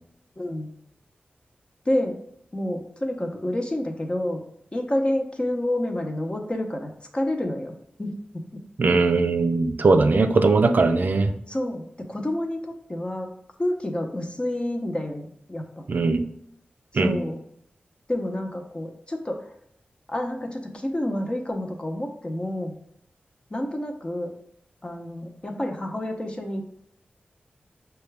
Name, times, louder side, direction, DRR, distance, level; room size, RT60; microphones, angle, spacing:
voice 1, 0.4-0.7 1.9-2.1 2.5-4.4 4.7-7.7 8.0-8.1 10.1-10.2 11.5-13.3 13.6-15.8 16.9-17.4 18.1-19.4 20.1-22.8 23.5-24.3 24.8-26.6, left 1 dB, 30° left, 3 dB, 0.7 m, -29 dB
voice 2, 8.8-11.3 15.9-16.2 16.9-17.2, right 3 dB, 60° right, 7 dB, 0.4 m, -20 dB
5.5 x 2.3 x 3.3 m, 0.73 s
cardioid pair, 55°, 3 cm